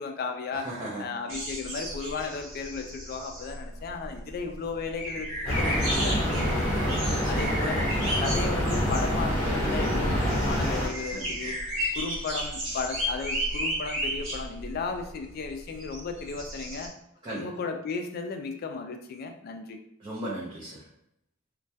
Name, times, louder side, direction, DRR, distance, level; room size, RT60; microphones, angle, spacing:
voice 1, 0.0-0.7 1.0-6.8 7.3-7.9 8.2-11.6 11.9-16.9 17.3-19.8, left 4 dB, 50° left, 5 dB, 0.3 m, -35 dB
voice 2, 0.5-1.2 6.8-7.3 11.1-11.5 17.2-17.5 20.0-20.8, right 1 dB, 25° right, -7 dB, 0.4 m, -38 dB
sound 1, 1.3-16.9, equal, 65° right, 0.9 m, -34 dB
sound 2, 5.4-10.9, equal, 30° left, 1.0 m, -26 dB
2.2 x 2.1 x 2.6 m, 0.78 s
head